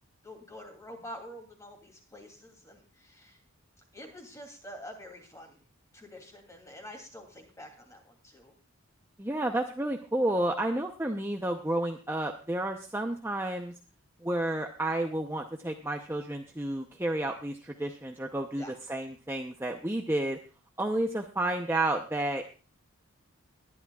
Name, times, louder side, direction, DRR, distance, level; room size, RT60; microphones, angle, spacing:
voice 1, 0.2-3.4 3.9-5.6 5.9-8.5 18.5-18.7, equal, 15° left, 3 dB, 2.8 m, -47 dB
voice 2, 9.2-13.7 14.2-18.6 18.9-20.4 20.8-22.4, right 1 dB, 10° right, 3 dB, 0.7 m, -31 dB
21.5 x 11.0 x 2.4 m, 0.35 s
head